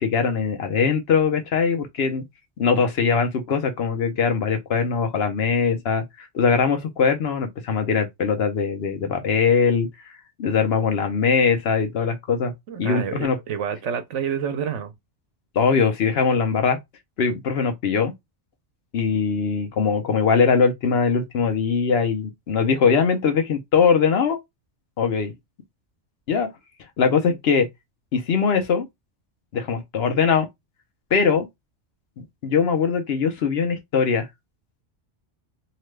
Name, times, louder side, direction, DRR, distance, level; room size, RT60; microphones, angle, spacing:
voice 1, 0.0-2.2 2.6-12.5 12.8-13.4 15.5-16.8 17.2-18.1 18.9-24.4 25.0-25.3 26.3-26.5 27.0-27.7 28.1-28.9 29.5-30.5 31.1-31.5 32.2-34.3, left 5 dB, 60° left, 0.9 m, -21 dB
voice 2, 12.7-14.9 27.3-27.4, right 7 dB, 80° right, 1.0 m, -28 dB
2.9 x 2.2 x 3.2 m
omnidirectional pair, 1.2 m